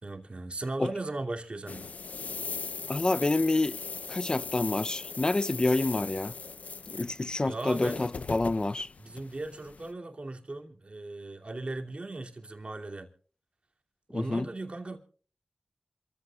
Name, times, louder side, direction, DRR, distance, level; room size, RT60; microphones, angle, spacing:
voice 1, 0.0-1.9 7.5-8.1 9.0-13.1 14.1-15.0, right 2 dB, 50° right, 2.6 m, -37 dB
sound 1, 1.7-9.9, left 4 dB, 80° left, 0.6 m, -39 dB
voice 2, 2.9-3.8 4.1-6.3 6.9-8.9 14.1-14.5, left 2 dB, 35° left, 0.6 m, -28 dB
27.5 x 14.5 x 2.4 m
cardioid pair, 50°, 2 cm